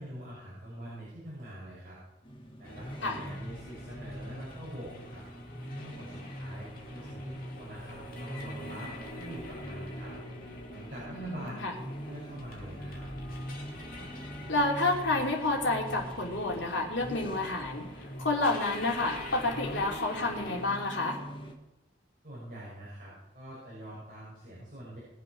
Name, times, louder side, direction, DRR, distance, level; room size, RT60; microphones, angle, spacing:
voice 1, 0.0-2.0 2.6-5.2 5.8-10.1 10.7-13.1 22.2-25.0, equal, 45° right, -7 dB, 6.6 m, -44 dB
sound 1, 2.2-21.5, equal, 25° left, 1.8 m, -44 dB
sound 2, 2.6-20.6, left 1 dB, 45° left, 2.7 m, -46 dB
voice 2, 11.1-11.7 14.5-17.9 18.2-21.2, left 2 dB, 65° left, 0 dB, 3.1 m, -29 dB
21.0 x 7.7 x 6.1 m, 0.93 s
head